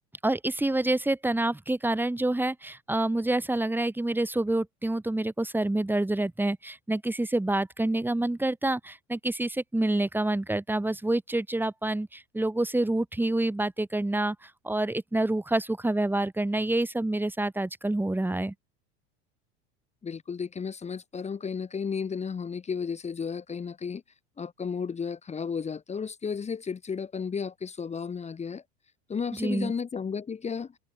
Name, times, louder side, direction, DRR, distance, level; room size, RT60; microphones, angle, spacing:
voice 1, 0.2-18.5 29.3-29.7, right 1 dB, 5° right, 3.4 m, -27 dB
voice 2, 20.0-24.0 24.4-28.6 29.1-30.7, left 6 dB, 20° left, 1.4 m, -33 dB
hypercardioid pair, 95°, 32 cm